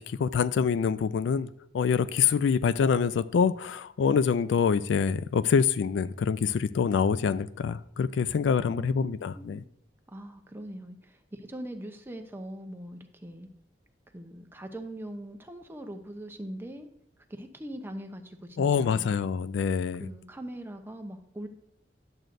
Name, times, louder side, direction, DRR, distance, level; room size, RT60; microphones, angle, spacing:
voice 1, 0.0-1.5 1.7-9.6 18.6-20.1, left 6 dB, 80° left, 15 dB, 0.3 m, -25 dB
voice 2, 8.6-9.6 10.1-13.5 14.1-16.9 17.3-19.1 20.0-21.5, right 1 dB, 15° right, 6 dB, 0.7 m, -41 dB
11.0 x 7.7 x 2.6 m, 0.74 s
head